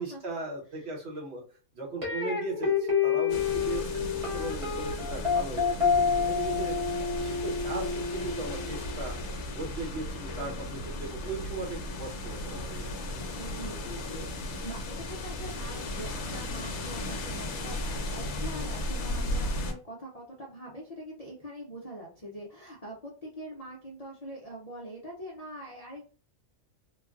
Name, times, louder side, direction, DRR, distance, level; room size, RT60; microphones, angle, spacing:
voice 1, 0.0-1.4 1.7-4.0 4.3-6.7 7.1-9.1 9.4-12.9, right 3 dB, 55° right, -2 dB, 1.1 m, -38 dB
sound 1, 2.0-9.1, left 6 dB, 30° right, 0.8 m, -29 dB
sound 2, 3.3-19.7, left 1 dB, 65° left, 0.9 m, -35 dB
voice 2, 13.4-26.1, right 1 dB, 45° left, -3 dB, 0.5 m, -43 dB
3.1 x 2.2 x 2.4 m, 0.38 s
omnidirectional pair, 1.5 m